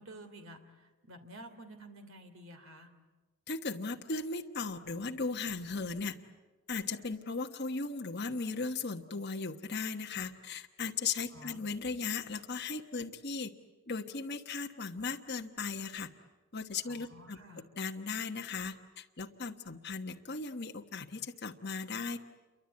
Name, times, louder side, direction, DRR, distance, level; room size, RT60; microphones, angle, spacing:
voice 1, 0.0-2.9 11.3-11.6 16.9-17.6, right 1 dB, 60° right, 7 dB, 3.0 m, -51 dB
voice 2, 3.5-6.2 6.7-13.5 13.9-16.1 16.5-17.4 17.8-22.2, left 4 dB, 45° left, 3 dB, 1.2 m, -37 dB
29.0 x 24.0 x 8.6 m, 1.2 s
head